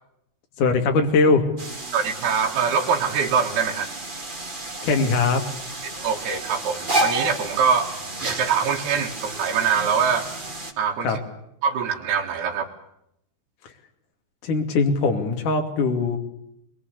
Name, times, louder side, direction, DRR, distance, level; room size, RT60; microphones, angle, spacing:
voice 1, 0.6-1.4 4.8-5.4 11.0-11.2 14.4-16.2, left 4 dB, 50° left, 4 dB, 3.8 m, -20 dB
sound 1, 1.6-10.7, right 2 dB, 20° right, 1.3 m, -31 dB
voice 2, 1.9-3.9 5.8-7.9 8.2-10.3 10.8-11.2 11.6-12.7, right 6 dB, 70° right, -1 dB, 3.6 m, -23 dB
23.5 x 22.0 x 8.3 m, 0.78 s
omnidirectional pair, 4.9 m